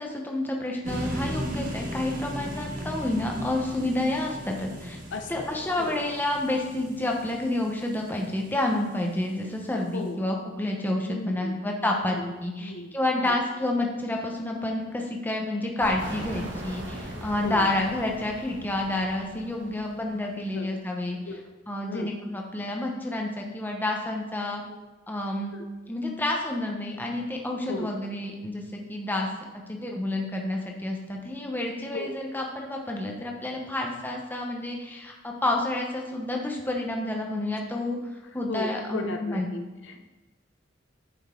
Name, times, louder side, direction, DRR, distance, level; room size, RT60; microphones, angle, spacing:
voice 1, 0.0-5.0 5.3-21.2 21.7-24.6 25.1-25.6 25.9-29.3 29.7-38.0 38.3-39.6, left 1 dB, 10° left, 0 dB, 0.9 m, -29 dB
sound 1, 0.8-8.9, right 1 dB, 45° right, 1.3 m, -37 dB
voice 2, 5.1-5.9 9.9-10.2 11.1-11.6 11.9-12.9 13.2-13.4 17.4-17.7 20.5-20.8 21.3-21.4 21.8-22.1 24.7-24.8 25.5-25.7 27.7-27.9 31.9-32.1 38.5-40.0, left 2 dB, 70° left, 5 dB, 0.7 m, -36 dB
sound 2, 15.8-20.5, right 1 dB, 70° right, 1.4 m, -40 dB
9.5 x 5.3 x 3.7 m, 1.2 s
head